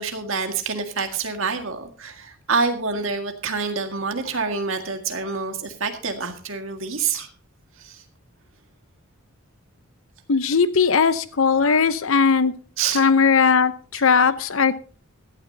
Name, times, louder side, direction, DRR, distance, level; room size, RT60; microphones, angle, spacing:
voice 1, 0.0-7.3 7.8-8.0 12.8-13.0, right 5 dB, 65° right, 5 dB, 1.9 m, -27 dB
voice 2, 10.3-12.5 12.9-14.7, left 5 dB, 70° left, 14 dB, 0.8 m, -18 dB
16.0 x 12.0 x 2.8 m, 0.39 s
head